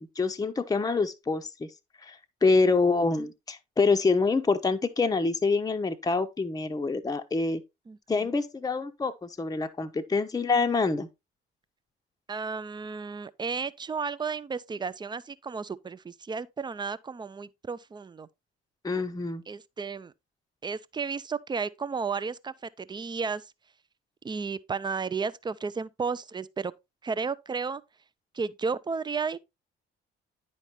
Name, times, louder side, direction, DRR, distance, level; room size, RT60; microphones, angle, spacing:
voice 1, 0.2-1.7 2.0-7.6 8.1-11.1 18.8-19.4, left 4 dB, 15° left, 0.7 m, -26 dB
voice 2, 7.9-8.3 12.3-18.3 19.5-20.1 20.6-23.5 24.2-26.7 27.0-27.8 28.3-29.4, right 5 dB, 15° right, 0.4 m, -33 dB
9.8 x 5.3 x 3.1 m
figure-of-eight pair, 45°, 30 cm